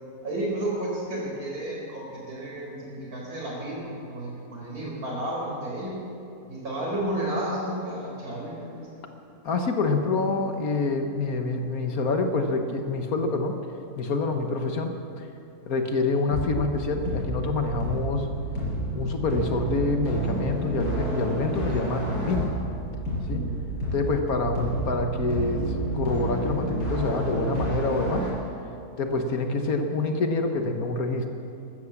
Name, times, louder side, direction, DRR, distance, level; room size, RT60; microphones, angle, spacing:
voice 1, 0.2-6.0 6.5-8.9 23.2-23.6, right 1 dB, 70° right, -4 dB, 5.1 m, -32 dB
voice 2, 9.4-13.6 14.0-15.3 15.7-18.3 18.9-22.5 23.3-23.4 23.9-28.3 29.0-31.3, left 3 dB, 65° left, 5 dB, 1.6 m, -26 dB
sound 1, 16.3-28.3, right 1 dB, 80° left, 5.4 m, -30 dB
15.0 x 13.0 x 7.2 m, 2.7 s
omnidirectional pair, 1.7 m